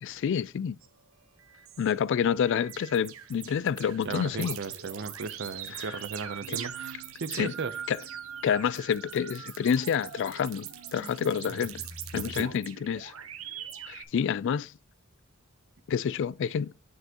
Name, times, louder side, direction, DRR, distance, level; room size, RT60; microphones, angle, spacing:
voice 1, 0.0-0.8 1.8-4.6 5.7-6.0 6.5-6.6 7.3-7.5 7.9-8.0 8.4-11.8 12.1-13.1 13.9-14.7 15.9-16.7, left 7 dB, 55° left, 0.3 m, -28 dB
sound 1, 0.8-0.9 1.4-1.9 2.5-14.0, right 9 dB, 70° right, 0.9 m, -41 dB
voice 2, 4.0-7.8 12.1-12.5, right 4 dB, 55° right, 0.6 m, -36 dB
6.8 x 6.6 x 2.8 m
head